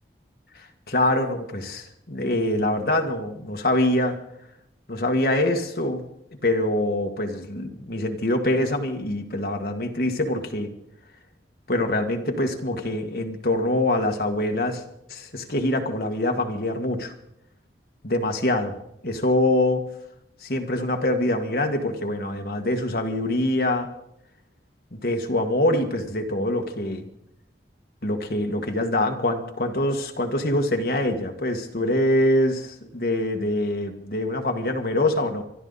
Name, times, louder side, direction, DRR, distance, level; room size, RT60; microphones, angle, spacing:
voice 1, 0.6-4.2 4.9-6.0 6.4-10.7 11.7-14.8 15.1-17.1 18.0-18.8 19.0-19.9 20.4-23.9 24.9-27.1 28.0-35.4, left 1 dB, 55° left, 4 dB, 1.8 m, -24 dB
25.5 x 12.0 x 4.1 m, 0.78 s
head